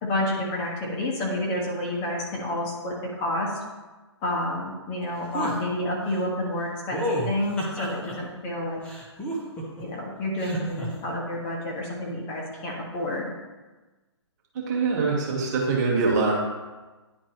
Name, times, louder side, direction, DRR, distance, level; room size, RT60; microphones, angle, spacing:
voice 1, 0.0-3.5 4.2-8.8 9.8-13.3, left 1 dB, 25° left, -3 dB, 1.4 m, -29 dB
sound 1, 5.3-5.6 6.9-8.1 8.8-9.8 10.4-10.9, equal, 5° left, 1.0 m, -30 dB
voice 2, 14.5-16.3, right 4 dB, 35° right, -2 dB, 1.6 m, -24 dB
10.0 x 4.4 x 3.1 m, 1.2 s
hypercardioid pair, 145°, 15 cm